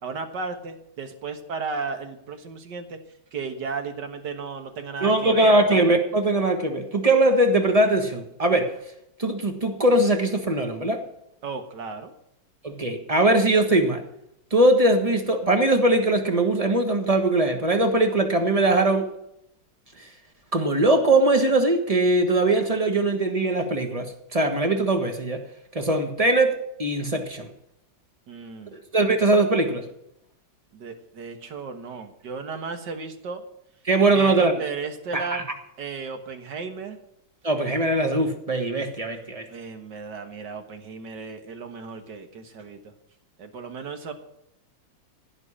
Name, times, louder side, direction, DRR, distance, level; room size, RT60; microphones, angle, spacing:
voice 1, 0.0-3.0 3.3-5.5 11.4-12.1 28.3-28.8 30.7-33.4 34.1-35.4 35.8-37.0 39.5-42.8 43.4-44.1, right 4 dB, 65° right, 6 dB, 2.0 m, -34 dB
voice 2, 5.0-8.7 9.2-11.0 12.6-14.0 14.5-19.1 20.5-25.4 25.7-26.5 26.8-27.5 28.7-29.9 33.9-34.5 35.1-35.4 37.4-39.5, right 2 dB, 20° right, 5 dB, 1.4 m, -21 dB
16.0 x 5.4 x 9.9 m, 0.78 s
omnidirectional pair, 2.1 m